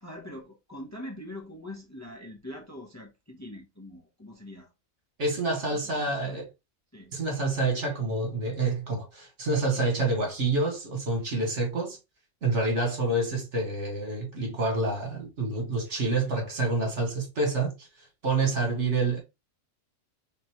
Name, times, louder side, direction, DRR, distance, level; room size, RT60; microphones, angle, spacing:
voice 1, 0.0-4.7 5.7-5.9 6.2-6.4 6.9-7.1, left 1 dB, 15° left, 0.8 m, -43 dB
voice 2, 5.2-6.5 7.1-12.0 12.4-19.2, right 2 dB, 65° right, 1.9 m, -28 dB
4.0 x 3.7 x 3.0 m
omnidirectional pair, 1.3 m